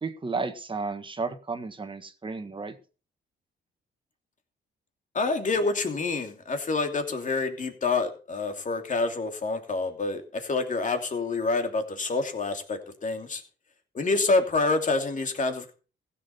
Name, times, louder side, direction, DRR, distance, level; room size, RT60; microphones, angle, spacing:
voice 1, 0.0-2.8, right 4 dB, 25° right, 8 dB, 1.7 m, -33 dB
voice 2, 5.1-13.4 13.9-15.7, left 3 dB, 40° left, 5 dB, 2.8 m, -27 dB
15.5 x 7.7 x 5.5 m, 0.36 s
cardioid pair, 90°, 20 cm